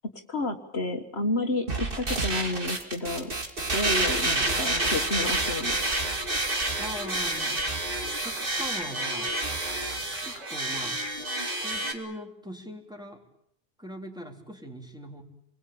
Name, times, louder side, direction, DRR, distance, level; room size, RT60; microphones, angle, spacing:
voice 1, 0.1-3.3 3.7-5.8, left 2 dB, 60° left, 5 dB, 1.9 m, -30 dB
sound 1, 1.7-11.9, right 2 dB, 45° right, 2.7 m, -29 dB
Clapping, 4.6-11.1, right 2 dB, 85° right, 3.9 m, -46 dB
voice 2, 6.8-7.6 8.2-9.3 10.2-11.0 11.6-13.2 13.8-15.2, equal, 5° right, 1 dB, 3.7 m, -40 dB
29.0 x 21.5 x 8.7 m, 0.74 s
omnidirectional pair, 1.2 m